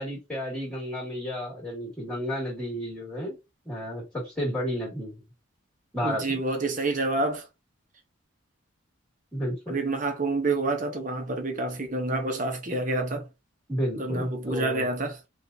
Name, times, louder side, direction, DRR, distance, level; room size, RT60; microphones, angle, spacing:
voice 1, 0.0-3.4 3.6-5.2 5.9-6.4 9.3-9.8 13.7-14.9, equal, 5° left, 2.4 m, -32 dB
voice 2, 6.0-7.5 9.7-13.3 14.0-15.2, right 2 dB, 40° right, 0.9 m, -28 dB
5.5 x 2.5 x 2.8 m
head